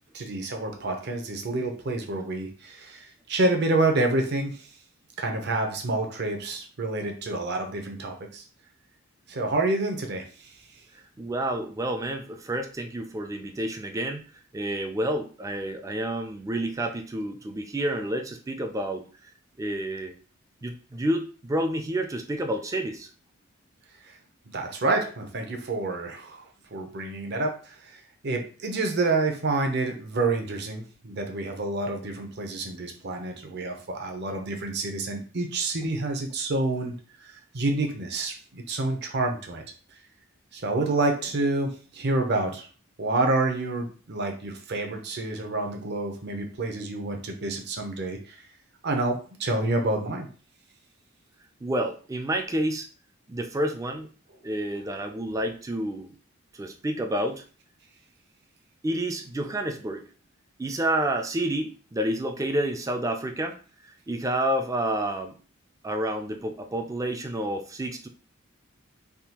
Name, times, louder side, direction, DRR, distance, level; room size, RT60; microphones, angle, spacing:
voice 1, 0.1-4.7 5.2-8.4 9.3-10.5 24.1-24.2 24.5-26.4 26.7-36.9 37.2-39.6 40.5-42.7 43.0-48.4 48.8-50.3, right 2 dB, 55° right, 4 dB, 0.6 m, -28 dB
voice 2, 11.2-19.0 19.6-20.1 20.6-23.1 51.6-52.9 53.3-54.1 54.4-56.1 56.5-57.4 58.8-60.1 60.6-63.6 64.1-65.3 65.8-68.1, right 1 dB, 15° right, 5 dB, 0.3 m, -29 dB
3.5 x 2.3 x 2.8 m, 0.39 s
head